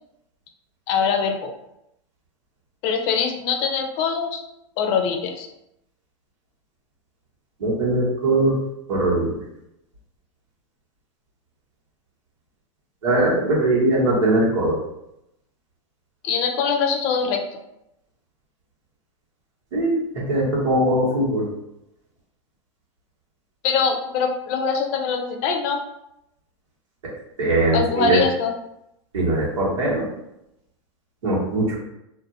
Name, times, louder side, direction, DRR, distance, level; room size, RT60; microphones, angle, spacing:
voice 1, 0.9-1.5 2.8-4.4 4.8-5.5 16.2-17.4 23.6-25.8 27.7-28.5, left 5 dB, 50° left, 4 dB, 0.5 m, -23 dB
voice 2, 7.6-8.6 8.9-9.4 13.0-14.8 19.7-21.5 27.4-28.2 29.1-30.1 31.2-31.8, right 1 dB, 90° right, -5 dB, 1.3 m, -20 dB
2.6 x 2.5 x 2.6 m, 0.84 s
hypercardioid pair, 115°, 16 cm